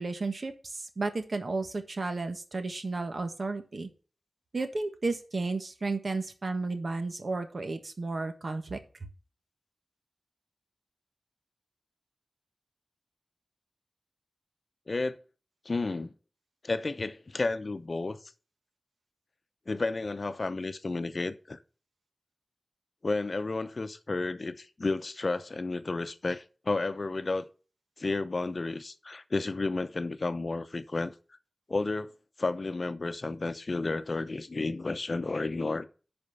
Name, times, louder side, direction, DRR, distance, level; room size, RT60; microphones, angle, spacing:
voice 1, 0.0-3.9 4.5-8.8, right 3 dB, 65° right, 1.4 m, -33 dB
voice 2, 14.9-15.2 15.6-16.1 16.6-18.2 19.7-21.6 23.0-27.5 28.0-31.1 31.7-32.1 32.4-35.9, left 3 dB, 60° left, 0.7 m, -32 dB
10.5 x 4.3 x 5.6 m
wide cardioid pair, 50°, 0 cm